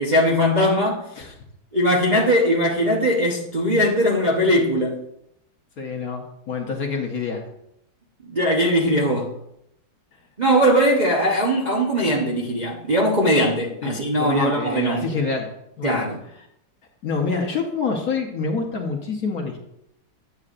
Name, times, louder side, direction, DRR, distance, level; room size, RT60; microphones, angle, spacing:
voice 1, 0.0-1.0 1.7-5.0 8.3-9.3 10.4-15.1 15.8-16.2, equal, 75° right, 0.4 m, -20 dB
voice 2, 5.8-7.4 13.8-15.5 15.8-16.1 17.0-19.6, left 4 dB, 55° left, 1.1 m, -27 dB
9.7 x 8.1 x 2.5 m
omnidirectional pair, 2.4 m